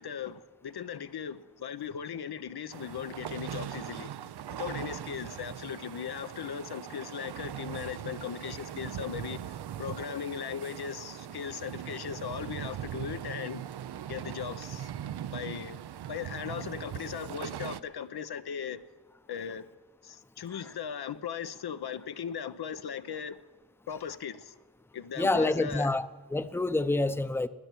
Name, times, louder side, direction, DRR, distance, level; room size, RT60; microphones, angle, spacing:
voice 1, 0.0-4.1 4.6-13.6 14.1-14.9 15.3-15.8 16.1-18.8 19.3-19.7 20.0-23.4 23.9-24.6 24.9-25.9, left 8 dB, 80° left, 0.7 m, -38 dB
sound 1, 2.7-17.8, right 10 dB, 85° right, 0.6 m, -40 dB
voice 2, 25.2-27.5, left 2 dB, 5° left, 0.6 m, -28 dB
20.5 x 6.8 x 9.1 m
cardioid pair, 55°, 38 cm